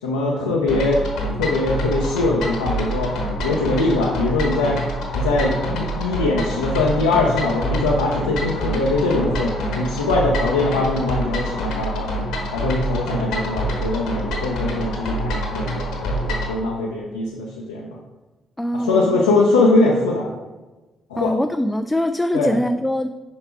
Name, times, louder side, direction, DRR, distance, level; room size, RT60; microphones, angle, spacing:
voice 1, 0.0-1.0 1.4-3.2 3.4-4.8 5.1-12.1 12.5-17.9 18.7-20.3 21.1-21.3 22.3-22.5, left 2 dB, 90° left, -3 dB, 0.6 m, -21 dB
sound 1, 0.7-16.5, equal, 70° left, 1.1 m, -26 dB
voice 2, 18.6-19.2 21.2-23.1, left 1 dB, 10° left, 8 dB, 0.3 m, -23 dB
5.5 x 4.8 x 4.5 m, 1.1 s
hypercardioid pair, 45°, 0 cm